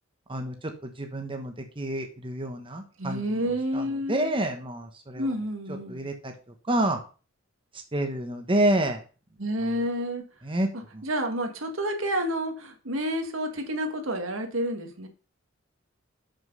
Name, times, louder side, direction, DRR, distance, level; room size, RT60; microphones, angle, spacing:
voice 1, 0.3-3.2 3.7-5.2 5.9-6.3 6.7-7.0 7.9-9.0 10.4-10.7 10.9-11.0, right 1 dB, 25° right, 4 dB, 1.2 m, -28 dB
voice 2, 3.0-4.3 5.1-6.0 9.4-10.2 10.7-15.1, equal, 85° right, 5 dB, 2.0 m, -30 dB
7.1 x 6.5 x 5.5 m, 0.35 s
head